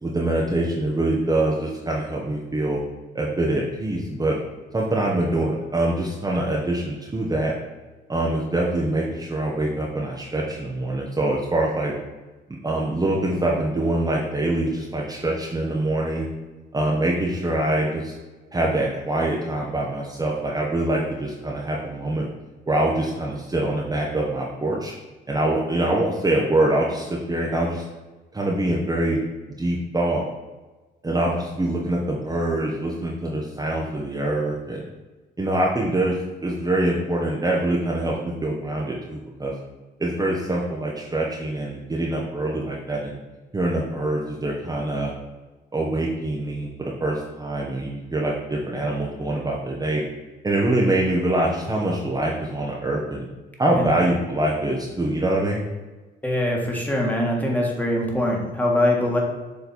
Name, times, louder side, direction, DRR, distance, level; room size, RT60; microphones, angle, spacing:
voice 1, 0.0-2.8 3.1-4.4 4.7-7.5 8.1-11.9 12.6-16.3 16.7-18.1 18.5-22.3 22.7-24.9 25.3-27.8 28.3-29.2 29.6-30.2 31.0-34.8 35.4-36.2 36.4-39.5 40.0-43.1 43.5-45.1 45.7-50.0 50.4-53.2 53.6-55.6, right 1 dB, 20° right, -3 dB, 0.9 m, -24 dB
voice 2, 56.2-59.2, left 1 dB, 10° left, -2 dB, 1.5 m, -23 dB
7.1 x 3.2 x 4.1 m, 1.2 s
cardioid pair, 90°, 20 cm